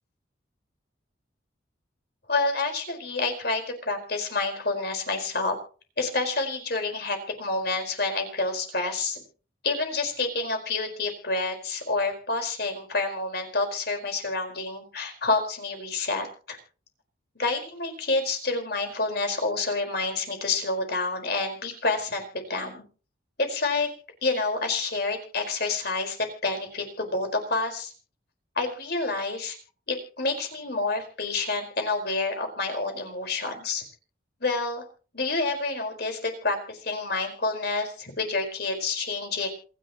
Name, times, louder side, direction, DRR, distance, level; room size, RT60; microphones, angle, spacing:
voice 1, 2.3-5.5 6.0-9.2 9.6-16.6 17.4-22.8 23.4-23.9 24.2-26.2 26.4-27.9 28.6-29.6 29.9-33.8 34.4-34.8 35.1-39.5, left 3 dB, 55° left, 4 dB, 4.7 m, -28 dB
27.5 x 11.0 x 3.0 m, 0.38 s
head